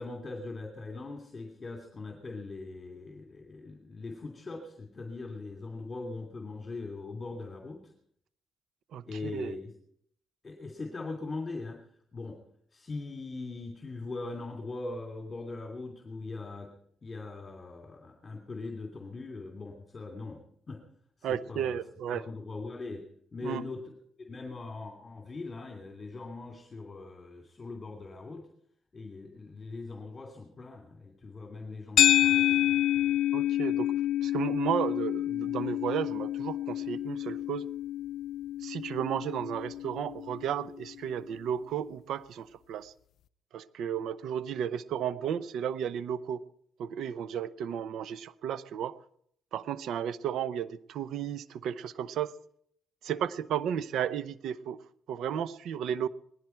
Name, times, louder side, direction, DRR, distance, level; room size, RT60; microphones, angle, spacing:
voice 1, 0.0-7.9 9.0-9.7 10.4-11.8 12.1-12.4 12.7-16.7 17.0-20.8 21.2-21.8 22.1-23.0 23.3-23.9 24.2-28.5 28.9-33.2, left 3 dB, 30° left, 3 dB, 2.7 m, -41 dB
voice 2, 8.9-9.5 21.2-22.2 23.4-23.6 33.3-33.9 34.2-37.7 38.6-42.9 43.5-46.4 46.8-49.0 49.5-52.3 53.0-54.8 55.1-56.1, right 9 dB, 75° right, 15 dB, 0.6 m, -33 dB
sound 1, 32.0-40.4, left 12 dB, 75° left, 0.5 m, -28 dB
19.0 x 15.5 x 4.5 m, 0.69 s
cardioid pair, 90°, 0 cm